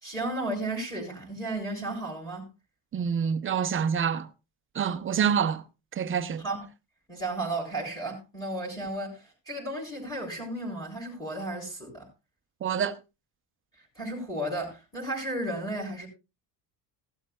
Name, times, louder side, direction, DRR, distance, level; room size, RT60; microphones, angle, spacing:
voice 1, 0.0-2.5 6.4-6.6 7.1-12.0 14.0-16.1, right 1 dB, 10° left, 3.8 m, -34 dB
voice 2, 2.9-4.3 4.7-5.6 5.9-6.4 12.6-12.9, right 7 dB, 30° right, 0.6 m, -27 dB
16.5 x 12.0 x 2.3 m
cardioid pair, 175°, 45 cm